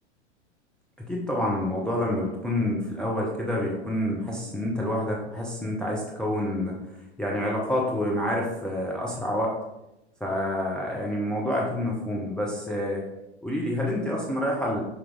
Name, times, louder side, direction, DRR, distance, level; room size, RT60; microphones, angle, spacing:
voice 1, 1.0-6.8 7.2-9.5 10.2-13.0 13.4-14.8, left 1 dB, ahead, -3 dB, 0.3 m, -28 dB
5.9 x 4.3 x 3.8 m, 0.91 s
figure-of-eight pair, 100°, 36 cm